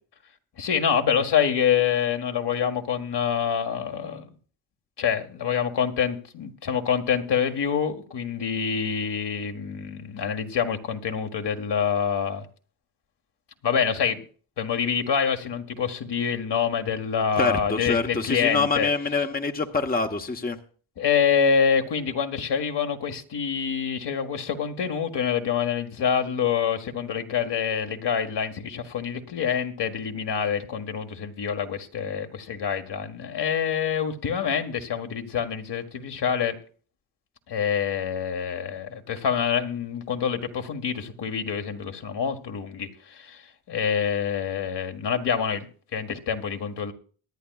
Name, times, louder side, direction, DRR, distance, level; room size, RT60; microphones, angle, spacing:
voice 1, 0.6-4.3 5.0-12.5 13.6-14.2 14.6-18.9 21.0-36.6 37.5-43.4 43.7-45.7 45.9-46.9, left 7 dB, 60° left, 5 dB, 1.8 m, -26 dB
voice 2, 17.4-20.6, left 4 dB, 20° left, 5 dB, 1.1 m, -25 dB
23.5 x 10.5 x 2.4 m, 0.41 s
cardioid pair, 70°, 47 cm